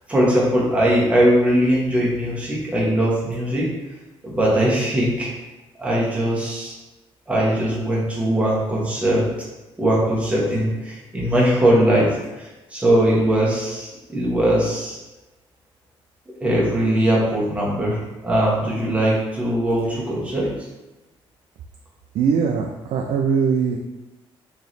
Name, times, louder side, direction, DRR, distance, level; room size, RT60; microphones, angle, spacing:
voice 1, 0.1-3.7 4.2-5.3 5.8-6.7 7.3-9.2 9.8-12.1 12.4-15.0 16.4-20.5, right 1 dB, 15° right, -6 dB, 1.1 m, -20 dB
voice 2, 22.1-23.8, right 6 dB, 80° right, 2 dB, 0.4 m, -21 dB
3.1 x 2.8 x 4.0 m, 1.1 s
cardioid pair, 135°, 10 cm